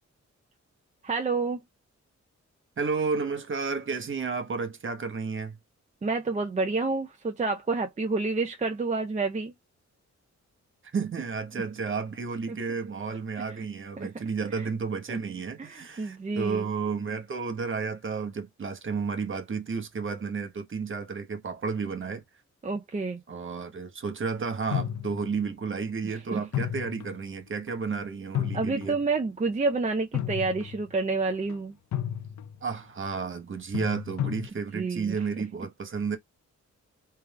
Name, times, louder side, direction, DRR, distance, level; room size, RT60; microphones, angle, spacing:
voice 1, 1.0-1.6 6.0-9.5 12.5-12.6 13.4-13.7 14.0-14.1 14.5-14.7 15.1-15.2 15.6-16.7 22.6-23.2 26.0-26.4 28.5-31.8 34.7-35.1, right 3 dB, 25° right, 0.5 m, -29 dB
voice 2, 2.8-5.6 10.9-22.2 23.3-29.0 32.6-36.2, right 5 dB, 45° right, 1.0 m, -32 dB
sound 1, 24.7-25.5 26.5-27.3 27.7-27.8 28.3-29.0 30.1-30.9 31.3-31.5 31.9-32.6 33.7-34.5, left 10 dB, 75° left, 0.5 m, -32 dB
3.3 x 2.3 x 3.4 m
wide cardioid pair, 125°, 29 cm